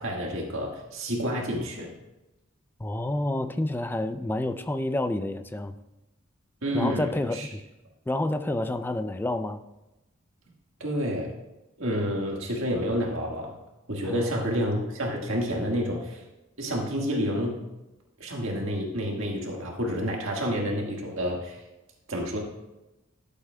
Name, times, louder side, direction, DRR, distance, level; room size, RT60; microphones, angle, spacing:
voice 1, 0.0-1.9 6.6-7.5 10.8-11.3 11.8-13.6 13.9-16.2 16.6-17.6 18.2-21.6 22.1-22.4, equal, 80° right, -1 dB, 1.6 m, -29 dB
voice 2, 2.8-5.8 6.7-7.6 8.1-9.6 14.0-14.4, left 1 dB, 10° left, 9 dB, 0.3 m, -29 dB
12.5 x 8.0 x 2.2 m, 0.98 s
head